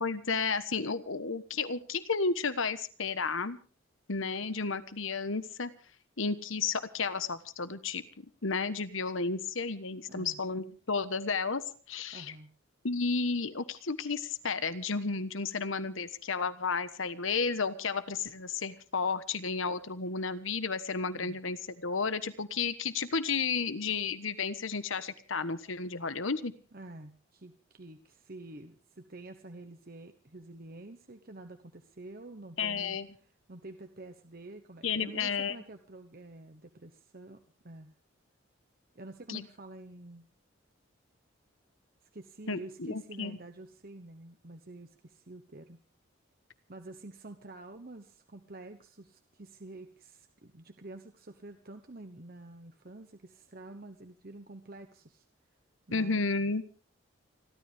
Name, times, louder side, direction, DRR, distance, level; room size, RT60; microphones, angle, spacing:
voice 1, 0.0-3.6 4.1-5.7 6.2-11.6 11.9-12.3 12.8-26.5 32.6-33.1 34.8-35.5 39.3-39.5 42.5-43.4 55.9-56.6, left 4 dB, 75° left, 13 dB, 1.2 m, -32 dB
voice 2, 10.1-10.4 12.1-12.5 21.1-21.4 26.7-33.0 33.5-37.4 37.6-37.9 38.9-40.3 42.1-45.8 46.7-55.2 55.9-56.3, right 2 dB, 45° right, 7 dB, 1.1 m, -48 dB
30.0 x 12.5 x 3.5 m, 0.37 s
head